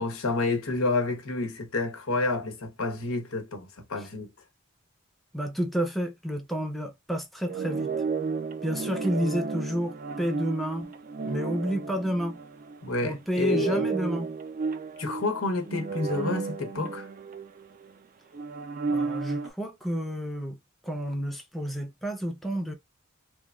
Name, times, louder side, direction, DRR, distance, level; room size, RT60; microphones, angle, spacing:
voice 1, 0.0-4.3 12.8-13.9 15.0-17.1, left 3 dB, 90° left, 0.9 m, -29 dB
voice 2, 5.3-7.9 8.6-10.9 11.3-12.4 13.0-14.3 18.9-20.6 20.8-22.7, equal, ahead, 0.6 m, -30 dB
sound 1, 7.5-13.0 13.3-17.9 18.3-19.5, right 4 dB, 40° right, 0.4 m, -33 dB
3.1 x 2.2 x 2.3 m
head